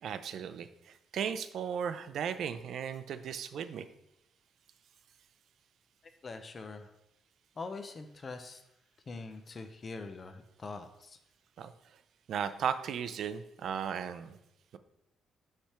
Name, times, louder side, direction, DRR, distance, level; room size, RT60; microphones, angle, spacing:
voice 1, 0.0-0.7 1.1-3.8 11.6-11.7 12.3-14.4, right 8 dB, 60° right, 11 dB, 0.4 m, -35 dB
voice 2, 6.2-6.9 7.6-8.6 9.1-11.2, left 3 dB, 30° left, 7 dB, 0.5 m, -43 dB
5.6 x 3.4 x 5.7 m, 0.83 s
cardioid pair, 140°, 0 cm